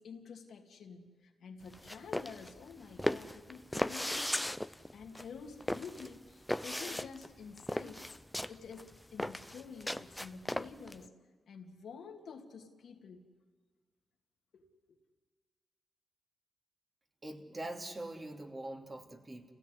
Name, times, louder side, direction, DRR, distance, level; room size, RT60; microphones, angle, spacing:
voice 1, 0.0-4.6 4.9-8.2 8.5-11.1 11.5-13.2 14.5-15.0, left 5 dB, 75° left, 2 dB, 2.4 m, -49 dB
sound 1, 1.7-11.0, left 1 dB, 5° left, 0.7 m, -37 dB
voice 2, 17.2-19.5, right 1 dB, 30° right, 2 dB, 3.1 m, -43 dB
27.0 x 16.5 x 9.9 m, 1.6 s
cardioid pair, 70°, 0 cm